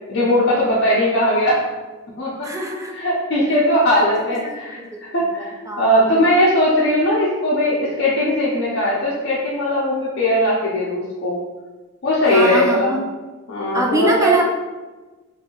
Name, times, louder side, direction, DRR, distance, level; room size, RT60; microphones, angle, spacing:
voice 1, 0.1-1.6 2.2-2.5 2.9-4.8 5.1-11.4 12.0-13.0 13.5-14.3, left 1 dB, 50° left, -8 dB, 0.6 m, -19 dB
voice 2, 2.4-3.0 3.9-4.0 4.4-5.0 5.4-6.1 12.3-13.0 13.7-14.5, right 1 dB, 15° right, 0 dB, 0.3 m, -23 dB
3.1 x 2.7 x 2.9 m, 1.2 s
head